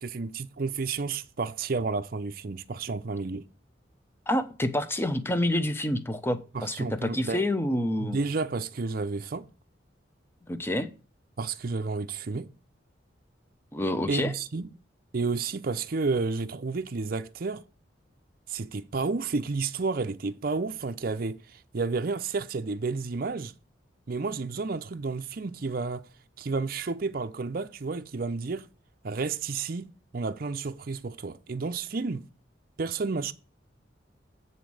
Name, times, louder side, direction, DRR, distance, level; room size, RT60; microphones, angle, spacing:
voice 1, 0.0-3.5 6.5-7.5 8.0-9.5 11.4-12.5 14.1-14.7 15.1-17.6 18.5-23.5 24.1-26.0 26.4-28.7 29.0-32.3 32.8-33.3, right 4 dB, 50° right, 0.5 m, -31 dB
voice 2, 4.3-8.2 10.5-10.9 13.7-14.3, left 1 dB, 10° left, 0.8 m, -28 dB
9.1 x 4.2 x 6.3 m
head